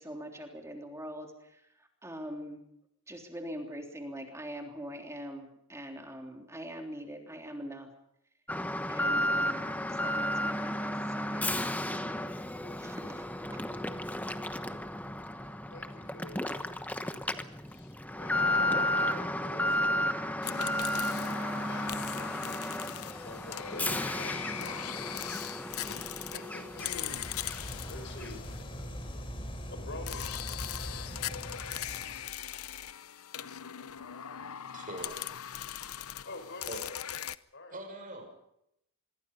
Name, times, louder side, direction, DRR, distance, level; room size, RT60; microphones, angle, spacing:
voice 1, 0.0-1.6 2.0-2.6 3.1-7.9 8.9-11.5 11.9-12.4 12.7-13.6, equal, 15° right, 3 dB, 3.4 m, -43 dB
Alarm, 8.5-27.2 27.5-27.6 28.2-28.3, left 1 dB, 5° left, 1.1 m, -33 dB
voice 2, 15.7-16.8 17.5-26.0 26.3-27.3 27.9-28.4 29.7-30.4 36.2-36.9 37.5-37.8, left 2 dB, 55° left, 9 dB, 4.7 m, -48 dB
sound 1, 20.4-29.3 30.1-37.4, left 11 dB, 75° left, 0.8 m, -40 dB
sound 2, 26.6-32.3, equal, 25° left, 3.9 m, -41 dB
voice 3, 34.6-35.4 36.7-36.8 37.2-37.3 37.7-38.3, right 1 dB, 40° right, 5 dB, 6.2 m, -43 dB
25.5 x 22.5 x 5.4 m, 0.79 s
head